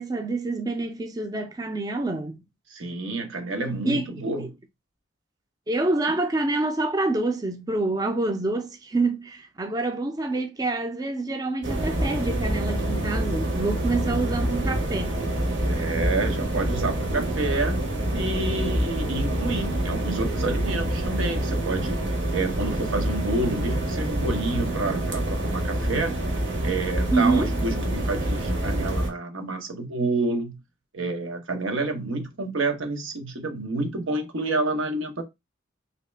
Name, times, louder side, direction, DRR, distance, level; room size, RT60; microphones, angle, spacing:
voice 1, 0.0-2.4 3.8-4.1 4.4-4.5 5.7-15.1 27.1-27.5, right 2 dB, 20° right, 0.4 m, -27 dB
voice 2, 2.7-4.5 14.1-14.4 15.6-17.8 18.1-22.0 22.3-26.2 26.6-30.6 30.9-35.2, right 2 dB, 90° right, 0.9 m, -29 dB
sound 1, 11.6-29.1, right 1 dB, 70° right, 1.2 m, -26 dB
3.1 x 2.8 x 3.2 m
head